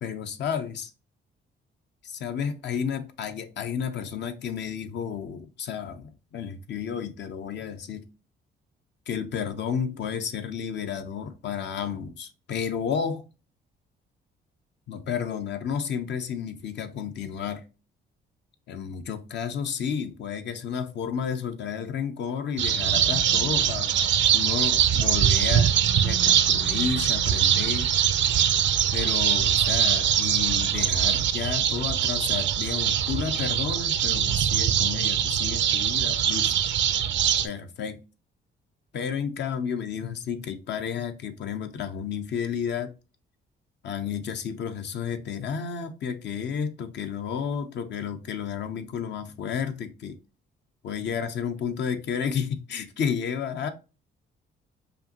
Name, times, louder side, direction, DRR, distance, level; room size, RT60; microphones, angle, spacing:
voice 1, 0.0-0.9 2.0-8.1 9.1-13.2 14.9-17.6 18.7-23.9 24.3-27.9 28.9-36.5 37.4-38.0 38.9-42.9 43.8-50.2 50.8-53.7, left 7 dB, 65° left, 0.7 m, -32 dB
sound 1, 22.6-37.5, right 9 dB, 65° right, 0.5 m, -23 dB
5.1 x 2.6 x 2.8 m
cardioid pair, 90°, 20 cm